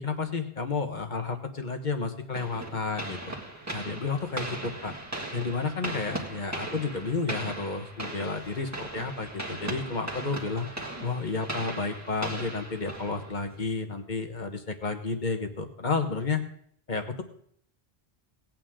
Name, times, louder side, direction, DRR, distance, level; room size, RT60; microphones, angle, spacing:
voice 1, 0.0-3.2 3.7-4.9 5.3-10.7 11.0-16.4 16.9-17.2, left 4 dB, 45° left, 5 dB, 1.4 m, -31 dB
sound 1, 2.4-13.6, right 1 dB, 15° right, 1.9 m, -38 dB
19.0 x 8.9 x 3.7 m, 0.65 s
omnidirectional pair, 1.1 m